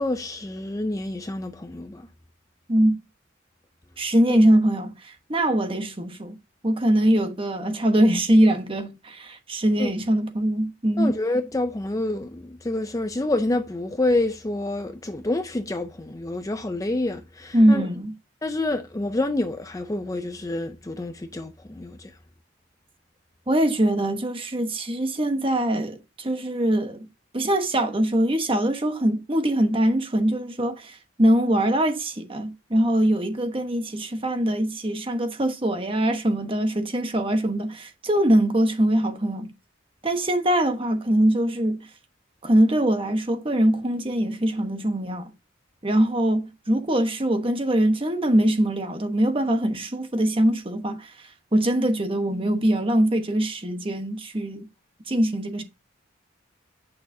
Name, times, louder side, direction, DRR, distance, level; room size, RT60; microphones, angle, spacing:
voice 1, 0.0-2.1 4.3-4.4 9.8-9.9 11.0-17.9 18.4-22.1, left 2 dB, 15° left, 0.5 m, -28 dB
voice 2, 4.0-6.3 6.6-11.2 17.5-18.1 23.5-27.1 27.3-39.5 40.0-41.9 42.4-45.3 45.8-51.1 51.5-54.7 55.1-55.6, right 1 dB, 25° right, 1.2 m, -22 dB
8.7 x 6.4 x 2.7 m
head